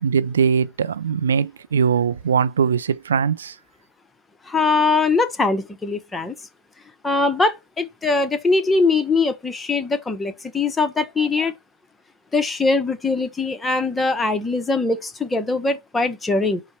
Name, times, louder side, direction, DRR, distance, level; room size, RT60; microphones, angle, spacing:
voice 1, 0.0-3.6, right 6 dB, 75° right, 0.3 m, -21 dB
voice 2, 4.4-6.3 7.0-11.5 12.3-16.6, left 3 dB, 10° left, 0.6 m, -21 dB
5.5 x 2.0 x 4.4 m
hypercardioid pair, 115°, 0 cm